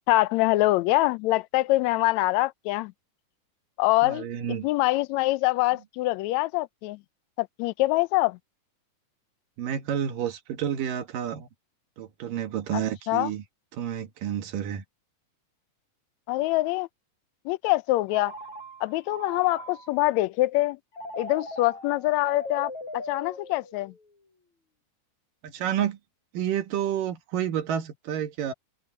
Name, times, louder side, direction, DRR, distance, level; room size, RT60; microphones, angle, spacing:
voice 1, 0.0-2.9 3.8-4.3 4.6-7.0 7.4-8.4 12.7-12.8 13.1-13.3 16.3-16.9 17.4-18.3 18.8-20.8 21.2-23.9, left 19 dB, 80° left, 1.7 m, -24 dB
voice 2, 4.0-4.7 9.6-11.5 12.0-13.4 13.7-14.8 25.4-26.0 26.3-28.5, right 10 dB, 80° right, 3.3 m, -30 dB
Telephone, 18.1-20.1 20.9-24.0, left 1 dB, 55° left, 7.0 m, -40 dB
open air
omnidirectional pair, 3.8 m